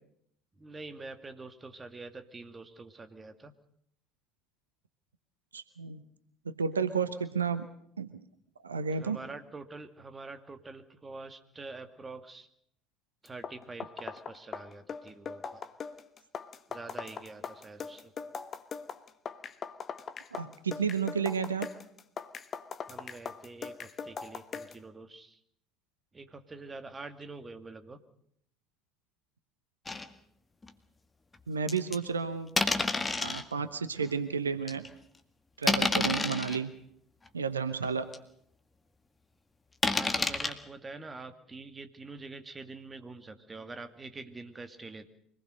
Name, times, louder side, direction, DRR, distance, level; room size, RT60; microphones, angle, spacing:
voice 1, 0.6-3.5 9.0-12.5 13.2-15.6 16.7-18.1 22.9-25.4 26.1-28.0 39.9-45.1, right 3 dB, 20° right, 8 dB, 2.2 m, -45 dB
voice 2, 5.5-6.0 6.4-7.7 8.0-8.2 8.6-9.2 20.3-21.7 31.5-32.5 33.2-34.8 35.6-36.7 37.3-38.1, right 6 dB, 80° right, 11 dB, 0.9 m, -32 dB
sound 1, 13.3-24.8, left 6 dB, 35° left, 1.3 m, -41 dB
sound 2, 29.9-30.1 30.6-30.7 31.7-32.0 32.6-33.4 34.1-34.2 34.7-34.9 35.6-36.6 37.3-37.4 37.8-37.9 38.1-38.2 39.8-40.5, left 3 dB, 20° left, 1.9 m, -29 dB
25.0 x 19.5 x 6.6 m, 0.70 s
figure-of-eight pair, 60°, 0 cm